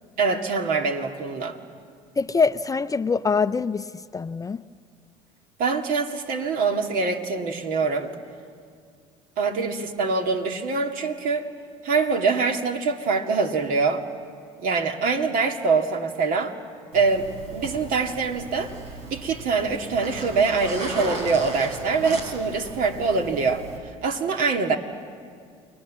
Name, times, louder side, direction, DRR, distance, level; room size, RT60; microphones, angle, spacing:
voice 1, 0.2-1.6 5.6-8.1 9.4-11.5 11.8-14.0 14.6-16.5 16.9-18.7 19.1-23.6 24.0-24.8, right 4 dB, 60° right, 5 dB, 2.2 m, -24 dB
voice 2, 2.2-3.9 4.1-4.6, left 5 dB, 20° left, 13 dB, 0.6 m, -23 dB
Zipper (clothing), 16.9-23.8, right 1 dB, 85° right, 4.2 m, -37 dB
29.0 x 21.5 x 7.5 m, 2.2 s
supercardioid pair, 80°, 16 cm